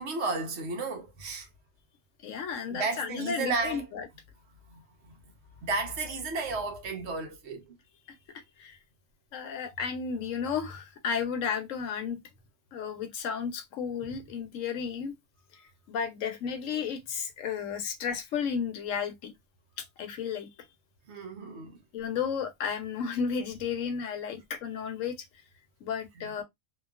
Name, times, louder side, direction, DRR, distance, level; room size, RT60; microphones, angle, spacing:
voice 1, 0.0-1.5 2.5-3.9 4.7-5.1 5.6-7.8 14.1-14.2 21.1-21.8 26.2-26.3, right 3 dB, 60° right, 1.0 m, -33 dB
voice 2, 2.2-4.1 8.6-8.8 9.3-12.2 12.7-15.1 15.9-19.3 19.8-20.5 21.9-25.1 25.8-26.4, left 6 dB, 75° left, 1.0 m, -33 dB
3.0 x 2.3 x 2.3 m
omnidirectional pair, 1.4 m